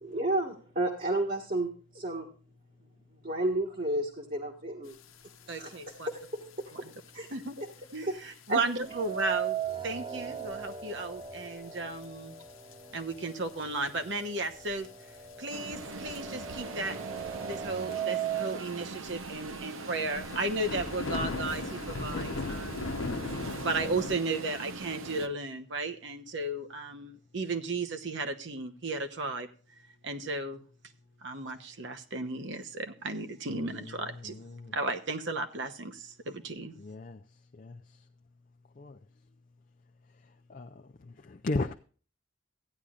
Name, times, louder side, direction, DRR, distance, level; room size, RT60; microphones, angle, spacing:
voice 1, 0.0-2.3 3.2-5.0 5.6-5.7 6.1-6.7 7.1-7.3 7.6-7.7 8.2-8.6, right 1 dB, 40° right, 1.4 m, -32 dB
sound 1, 5.5-5.6 5.9-6.3 6.9-7.1 7.7-7.8 8.5-8.6 8.9-9.0 9.2-9.3 10.4-10.6 11.0-11.1 12.0-12.1 12.7-13.1 13.5-13.6 14.2-14.8 15.9-16.2 16.5-16.6 16.9-17.0 17.2-17.3 17.9-18.0 18.4-18.5 19.0-24.2, left 3 dB, 85° left, 0.9 m, -37 dB
voice 2, 5.5-6.1 6.8-6.9 7.3-7.6 7.9-9.6 9.8-12.3 12.9-14.9 15.4-17.0 17.4-22.9 23.5-29.5 30.0-30.6 31.2-34.3 34.7-36.7, right 3 dB, 60° right, 1.0 m, -34 dB
sound 2, 8.9-12.9 13.3-13.4 14.3-14.4 14.8-18.6, right 9 dB, 25° right, 0.4 m, -37 dB
sound 3, 15.5-25.3, right 3 dB, 85° right, 0.8 m, -42 dB
voice 3, 36.8-37.2 37.6-37.8 38.8-39.0 40.5-40.7 41.3-41.7, left 2 dB, 40° left, 0.5 m, -34 dB
15.5 x 10.0 x 2.5 m
head